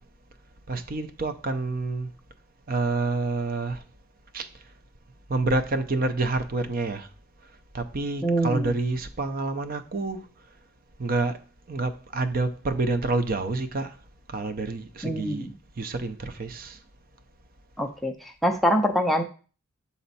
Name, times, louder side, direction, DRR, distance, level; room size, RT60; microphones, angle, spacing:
voice 1, 0.7-2.1 2.7-3.8 4.3-4.5 5.3-7.1 7.7-10.2 11.0-11.4 11.7-13.9 14.3-15.5 15.8-16.8, right 3 dB, 45° right, 0.6 m, -28 dB
voice 2, 8.2-8.7 15.0-15.5 17.8-19.2, equal, ahead, 0.4 m, -24 dB
6.9 x 4.1 x 4.1 m
head